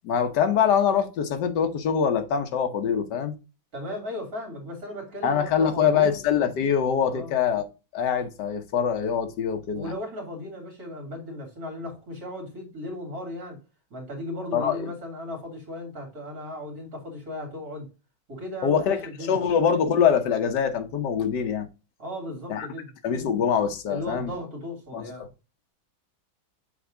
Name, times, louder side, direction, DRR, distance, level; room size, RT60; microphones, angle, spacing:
voice 1, 0.0-3.3 5.2-7.6 7.9-9.9 14.5-14.9 18.6-21.7 22.5-22.7 23.0-24.3 24.9-25.0, left 7 dB, 65° left, 1.5 m, -24 dB
voice 2, 3.7-6.1 7.1-7.3 9.7-13.6 13.9-17.9 18.3-19.4 22.0-22.9 23.9-25.3, left 1 dB, 50° right, 3.1 m, -36 dB
6.9 x 4.1 x 3.7 m
omnidirectional pair, 2.1 m